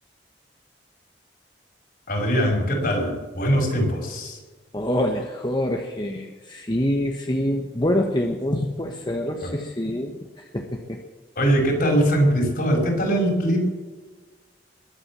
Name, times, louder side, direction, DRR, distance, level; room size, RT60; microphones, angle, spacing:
voice 1, 2.1-4.4 9.4-9.5 11.4-13.6, equal, 55° left, 1 dB, 5.7 m, -21 dB
voice 2, 4.7-11.0, left 1 dB, 25° left, 2 dB, 1.2 m, -26 dB
21.5 x 8.8 x 7.5 m, 1.3 s
head